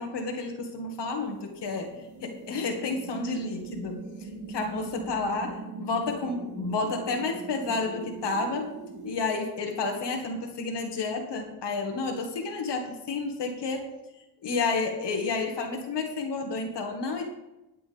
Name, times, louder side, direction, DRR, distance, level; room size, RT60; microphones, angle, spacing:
voice 1, 0.0-1.9 2.2-4.0 4.5-8.7 9.0-13.9 14.4-17.2, left 3 dB, 85° left, 3 dB, 2.0 m, -30 dB
sound 1, 1.0-9.2, right 3 dB, 60° right, 2.2 m, -41 dB
20.0 x 7.8 x 3.5 m, 0.99 s
cardioid pair, 65°, 40 cm